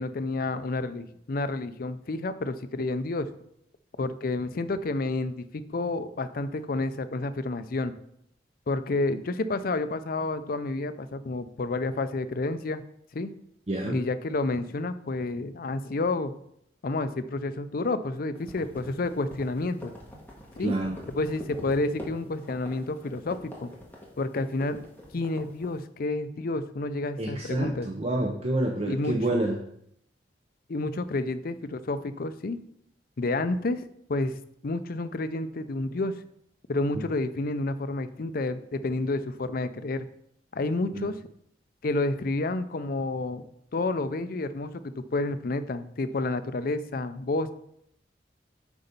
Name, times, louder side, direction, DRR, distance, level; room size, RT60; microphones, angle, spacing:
voice 1, 0.0-3.3 4.0-7.9 8.7-12.8 13.1-13.3 13.8-16.4 16.8-19.9 20.6-20.7 21.1-23.7 24.2-24.8 25.1-27.9 28.9-29.2 30.7-32.6 33.2-33.8 34.1-34.4 34.6-36.2 36.7-40.1 40.5-41.2 41.8-43.4 43.7-47.5, left 2 dB, 55° left, 11 dB, 0.5 m, -30 dB
voice 2, 13.7-14.0 20.6-21.0 27.2-29.6 40.9-41.0, right 1 dB, 35° right, 1 dB, 0.7 m, -28 dB
sound 1, 18.3-25.8, left 1 dB, 10° left, 1.5 m, -44 dB
8.3 x 4.0 x 5.3 m, 0.73 s
head